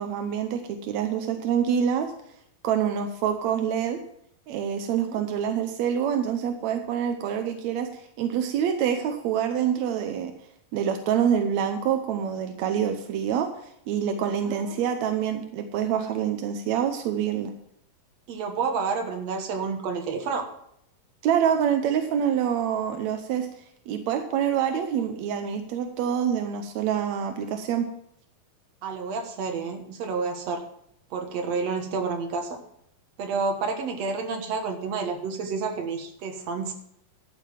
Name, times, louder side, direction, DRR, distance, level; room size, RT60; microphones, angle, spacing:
voice 1, 0.0-2.1 2.6-4.0 4.5-10.3 10.7-13.5 13.9-17.5 21.2-23.5 23.9-27.9, right 8 dB, 75° right, 6 dB, 1.6 m, -26 dB
voice 2, 14.4-14.8 18.3-20.4 24.7-24.8 28.8-30.6 31.1-32.6 33.2-36.7, right 4 dB, 55° right, 4 dB, 2.2 m, -30 dB
12.5 x 7.2 x 5.7 m, 0.73 s
omnidirectional pair, 4.1 m